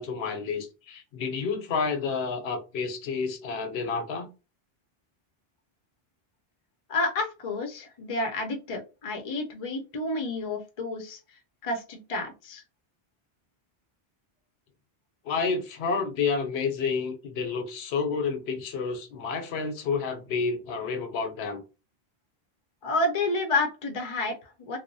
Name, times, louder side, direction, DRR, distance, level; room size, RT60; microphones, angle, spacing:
voice 1, 0.0-4.3 15.2-21.6, left 5 dB, 85° left, 0.9 m, -30 dB
voice 2, 6.9-11.2 11.6-12.6 22.8-24.8, left 2 dB, 40° left, 0.5 m, -30 dB
2.7 x 2.0 x 2.6 m
omnidirectional pair, 1.0 m